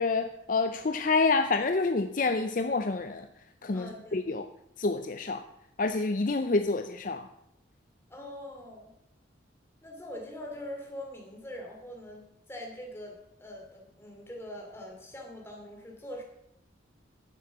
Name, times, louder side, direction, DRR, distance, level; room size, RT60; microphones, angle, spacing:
voice 1, 0.0-3.3 3.6-4.5 4.8-5.4 5.8-7.3, left 3 dB, 45° left, 8 dB, 0.5 m, -28 dB
voice 2, 3.7-4.4 8.1-8.9 9.8-12.2 12.5-16.2, left 1 dB, 15° left, -1 dB, 2.7 m, -43 dB
10.5 x 7.5 x 7.2 m, 0.80 s
head